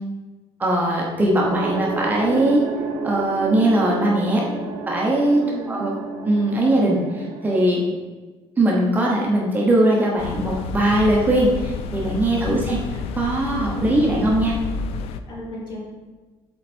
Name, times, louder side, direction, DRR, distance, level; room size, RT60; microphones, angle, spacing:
voice 1, 0.6-2.6 3.0-4.4 4.9-5.4 5.7-5.9 6.2-7.8 8.6-12.8 13.1-14.5, right 1 dB, 15° right, -3 dB, 1.0 m, -20 dB
sound 1, 1.4-7.6, right 4 dB, 50° right, 0.7 m, -31 dB
voice 2, 5.4-5.8 12.4-12.7 13.7-13.9 15.3-15.8, left 1 dB, 45° left, -4 dB, 2.2 m, -35 dB
sound 2, 10.2-15.2, left 5 dB, 70° left, 0.4 m, -30 dB
7.7 x 4.0 x 4.4 m, 1.3 s
cardioid pair, 155°, 11 cm